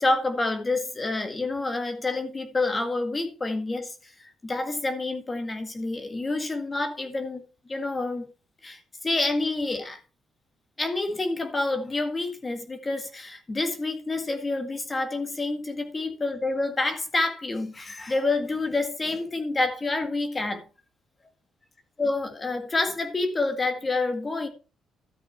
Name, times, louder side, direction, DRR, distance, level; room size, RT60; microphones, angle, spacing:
voice 1, 0.0-7.4 7.7-8.3 8.6-10.0 10.8-20.7 22.0-24.5, left 2 dB, 25° left, 2.0 m, -28 dB
13.0 x 6.0 x 4.5 m
cardioid pair, 90°, 0 cm